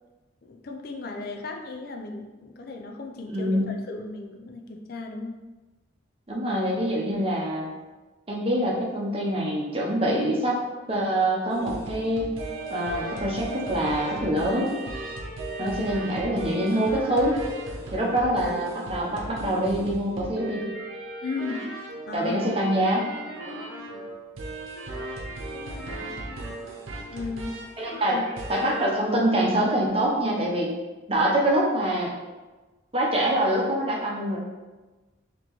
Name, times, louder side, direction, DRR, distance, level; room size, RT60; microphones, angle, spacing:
voice 1, 0.4-5.4 15.6-15.8 18.0-18.1 21.2-21.7 22.1-22.4 23.9-24.1 25.5-26.2 27.1-27.6 27.9-28.2, left 3 dB, 50° left, 3 dB, 0.4 m, -36 dB
voice 2, 3.3-3.7 6.3-7.7 8.3-10.6 10.9-12.3 12.7-14.7 15.6-17.4 17.9-20.8 22.1-23.1 27.8-28.2 28.5-30.7 31.1-32.1 32.9-34.4, right 1 dB, 30° right, -3 dB, 0.8 m, -25 dB
sound 1, 11.5-29.0 29.4-29.7, right 2 dB, 85° right, 0.8 m, -37 dB
4.2 x 2.9 x 3.1 m, 1.2 s
head